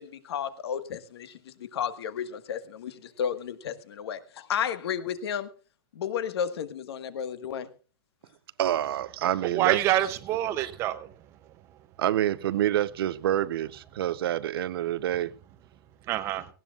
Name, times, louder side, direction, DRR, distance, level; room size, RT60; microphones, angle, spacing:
voice 1, 0.3-1.3 1.7-2.9 3.2-4.2 4.5-5.5 6.0-7.7, left 8 dB, 75° left, 1.5 m, -32 dB
voice 2, 8.6-9.8 10.6-10.7 12.0-15.3, right 12 dB, 65° right, 0.7 m, -27 dB
voice 3, 9.4-11.1 16.1-16.5, right 13 dB, 20° right, 0.6 m, -26 dB
18.5 x 17.0 x 2.4 m
supercardioid pair, 180°, 14 cm